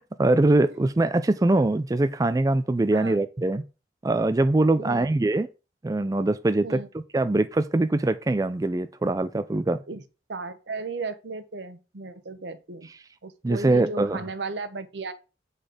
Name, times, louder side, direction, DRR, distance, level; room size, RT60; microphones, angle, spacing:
voice 1, 0.0-3.6 4.0-5.5 5.8-6.8 7.1-9.8 13.4-14.2, right 2 dB, 20° right, 0.3 m, -23 dB
voice 2, 4.8-5.1 6.6-6.9 9.9-10.0 10.3-12.9 13.2-15.1, right 3 dB, 75° right, 0.9 m, -35 dB
7.8 x 4.1 x 5.0 m
head